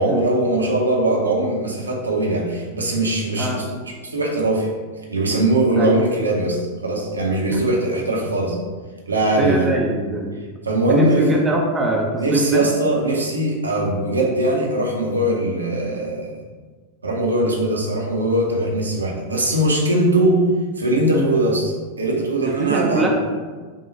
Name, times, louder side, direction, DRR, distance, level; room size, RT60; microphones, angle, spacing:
voice 1, 0.0-4.7 5.1-8.6 9.1-9.7 10.6-11.4 12.2-16.4 17.0-20.4 20.8-23.1, right 1 dB, 80° right, -1 dB, 0.7 m, -21 dB
voice 2, 9.4-10.3 10.9-12.7 21.1-21.3 22.6-23.1, right 2 dB, 15° right, -1 dB, 0.5 m, -22 dB
5.5 x 2.3 x 3.0 m, 1.4 s
figure-of-eight pair, 90°, 0 cm